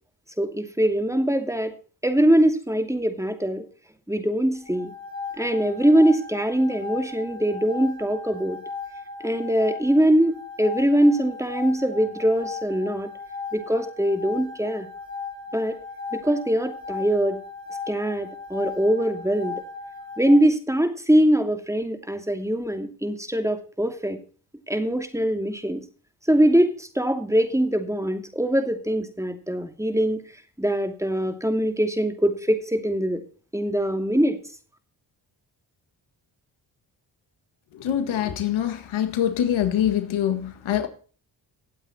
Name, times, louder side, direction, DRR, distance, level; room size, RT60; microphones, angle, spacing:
voice 1, 0.4-1.7 2.0-3.6 4.1-4.9 5.4-8.6 9.2-13.1 13.5-14.9 15.5-15.8 16.1-17.4 17.9-19.5 20.2-24.2 24.7-25.8 26.3-30.2 30.6-33.2 33.5-34.4, right 1 dB, 5° right, 2.7 m, -22 dB
sound 1, 4.5-20.4, left 4 dB, 45° left, 7.6 m, -37 dB
voice 2, 37.7-40.9, left 10 dB, 75° left, 1.8 m, -24 dB
18.0 x 8.0 x 4.3 m
supercardioid pair, 50°, 48 cm